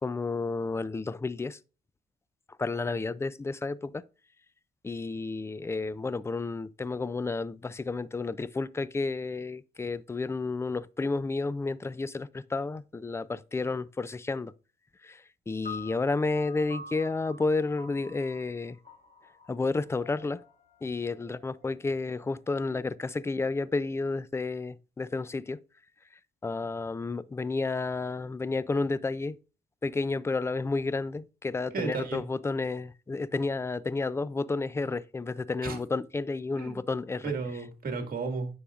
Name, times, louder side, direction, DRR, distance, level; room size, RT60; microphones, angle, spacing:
voice 1, 0.0-1.6 2.6-4.0 4.8-14.5 15.0-18.8 19.5-20.4 20.8-25.6 26.1-29.4 29.8-37.3, left 3 dB, 15° left, 0.3 m, -31 dB
sound 1, 15.7-22.1, left 3 dB, 40° left, 2.8 m, -47 dB
voice 2, 31.7-32.2 35.6-35.8 36.5-36.8 37.2-38.5, right 4 dB, 45° right, 1.9 m, -33 dB
9.7 x 6.2 x 2.4 m
cardioid pair, 90°, 20 cm